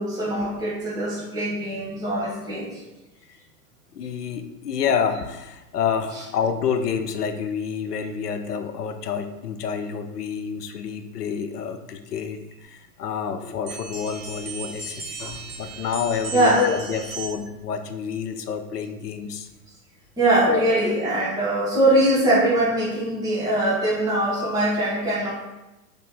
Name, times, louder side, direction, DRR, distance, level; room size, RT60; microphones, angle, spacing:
voice 1, 0.0-2.8 15.2-15.3 16.3-16.6 20.2-25.3, right 1 dB, 10° right, -8 dB, 1.2 m, -22 dB
voice 2, 3.9-19.5 20.5-20.6, left 7 dB, 90° left, 8 dB, 0.6 m, -28 dB
sound 1, 13.7-17.6, right 4 dB, 70° right, 1.3 m, -36 dB
3.1 x 3.0 x 3.7 m, 0.99 s
hypercardioid pair, 110°, 45 cm